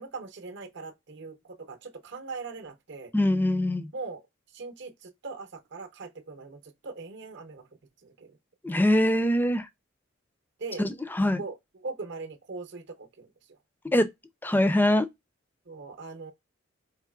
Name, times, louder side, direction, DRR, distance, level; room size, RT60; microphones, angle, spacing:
voice 1, 0.0-3.1 3.9-4.2 4.5-7.6 8.0-8.4 10.6-10.8 11.4-11.6 11.8-13.3 15.7-16.3, right 3 dB, 60° right, 0.7 m, -40 dB
voice 2, 3.1-3.9 8.6-9.7 10.8-11.4 13.9-14.1 14.4-15.1, left 1 dB, 10° left, 0.4 m, -23 dB
4.7 x 3.0 x 2.3 m
head